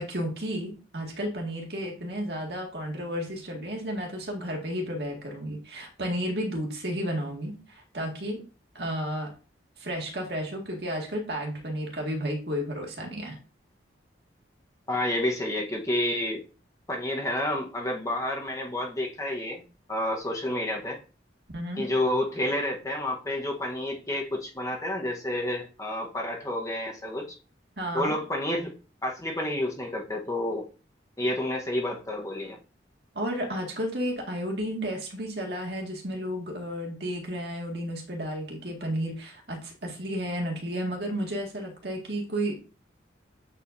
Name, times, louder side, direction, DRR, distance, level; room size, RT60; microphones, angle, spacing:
voice 1, 0.0-8.4 8.7-9.3 9.8-13.4 21.5-21.9 27.8-28.1 33.1-42.6, equal, 60° right, 0 dB, 2.0 m, -32 dB
voice 2, 14.9-16.4 16.9-19.6 19.9-21.0 21.8-27.3 27.9-28.7 29.0-30.6 31.2-32.6, left 1 dB, 15° left, 0 dB, 1.1 m, -29 dB
8.5 x 4.9 x 2.7 m, 0.35 s
head